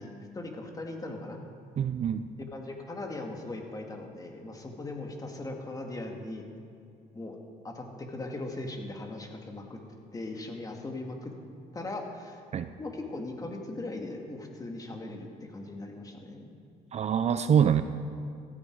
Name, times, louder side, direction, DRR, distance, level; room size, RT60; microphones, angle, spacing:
voice 1, 0.0-1.4 2.5-6.4 7.1-7.4 7.6-9.8 10.1-11.3 11.7-12.4 12.8-16.5, left 2 dB, 20° left, 2 dB, 2.2 m, -39 dB
voice 2, 1.8-2.3 12.5-12.7 16.9-17.8, right 8 dB, 40° right, 11 dB, 0.5 m, -25 dB
15.5 x 13.5 x 4.8 m, 2.4 s
cardioid pair, 110°, 17 cm